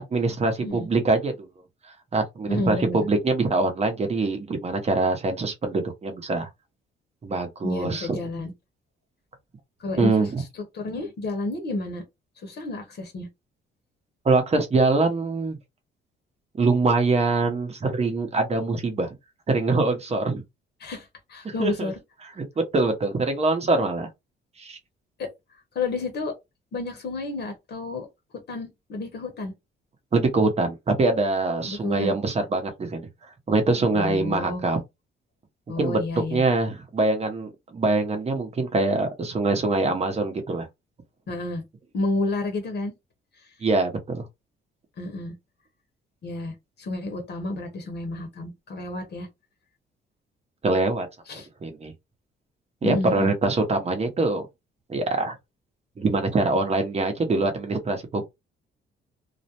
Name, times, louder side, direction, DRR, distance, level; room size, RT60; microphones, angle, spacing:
voice 1, 0.1-1.5 2.1-6.5 7.2-8.2 10.0-10.4 14.2-15.6 16.6-19.1 19.5-20.4 21.4-21.9 22.4-22.5 22.7-24.1 24.6-24.8 30.1-33.1 33.5-34.8 35.8-36.0 36.3-40.7 43.6-44.3 50.6-51.1 51.6-51.9 52.8-54.4 54.9-55.4 56.0-58.3, right 3 dB, 30° right, 0.8 m, -24 dB
voice 2, 2.5-3.1 7.6-8.5 9.8-12.0 12.4-13.3 20.8-21.9 25.2-25.3 25.7-26.3 26.7-28.1 28.5-29.5 31.6-32.1 33.9-34.6 35.7-36.4 41.3-41.6 41.9-42.9 45.0-45.3 46.2-49.3 51.3-51.5 52.8-53.3, left 2 dB, 55° left, 0.9 m, -30 dB
2.4 x 2.1 x 2.8 m
cardioid pair, 90°, 20 cm